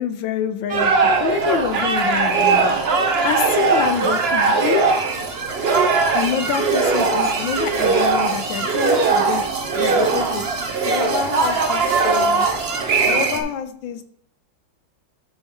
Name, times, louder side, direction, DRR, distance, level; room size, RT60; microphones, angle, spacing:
voice 1, 0.0-2.7 3.2-4.9 6.1-9.4 9.7-10.4 10.8-12.5 13.1-14.0, left 8 dB, 75° left, 10 dB, 1.3 m, -26 dB
sound 1, 0.7-13.4, right 4 dB, 50° right, 0.7 m, -20 dB
9.8 x 4.4 x 3.5 m, 0.66 s
omnidirectional pair, 2.2 m